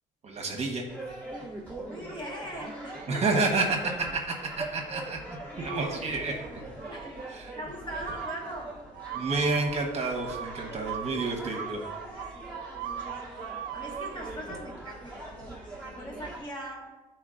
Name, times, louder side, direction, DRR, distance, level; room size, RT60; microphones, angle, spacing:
voice 1, 0.2-0.9 3.1-5.4 5.6-6.3 7.3-7.5 9.1-11.8, right 3 dB, 40° right, 1 dB, 1.1 m, -29 dB
sound 1, 0.9-16.4, right 2 dB, 10° left, 1.5 m, -42 dB
voice 2, 1.8-3.4 5.5-8.8 10.6-10.9 11.8-12.0 12.3-17.0, equal, 30° left, -1 dB, 1.4 m, -42 dB
sound 2, 5.7-6.4 6.8-7.4 8.1-14.4, right 10 dB, 80° right, 0.5 m, -40 dB
10.5 x 4.4 x 2.5 m, 1.2 s
cardioid pair, 110°, 17 cm